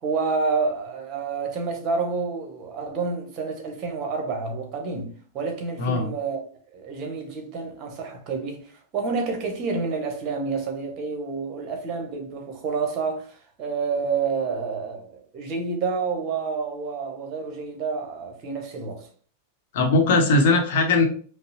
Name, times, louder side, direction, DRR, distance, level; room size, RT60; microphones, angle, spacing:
voice 1, 0.0-6.4 6.7-19.1, right 4 dB, 35° right, 1.0 m, -29 dB
voice 2, 5.8-6.1 19.7-21.1, left 3 dB, 50° left, 0.9 m, -19 dB
5.2 x 2.0 x 2.9 m
figure-of-eight pair, 90°, 0 cm